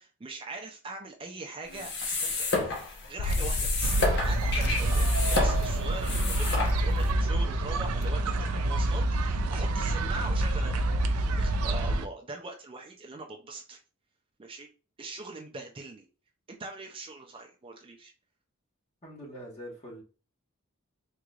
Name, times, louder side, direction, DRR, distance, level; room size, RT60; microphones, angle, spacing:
voice 1, 0.0-10.9 11.4-13.8 14.4-14.7 15.0-16.1 16.5-18.1, right 3 dB, 25° right, 2 dB, 0.4 m, -42 dB
sound 1, 1.7-7.1, left 3 dB, 55° left, 0.9 m, -31 dB
sound 2, 3.2-8.0, left 2 dB, 75° left, 0.4 m, -35 dB
sound 3, 3.8-12.1, right 1 dB, 80° right, 0.4 m, -27 dB
voice 2, 19.0-20.0, equal, 30° left, -4 dB, 1.3 m, -43 dB
3.7 x 3.2 x 2.4 m, 0.34 s
head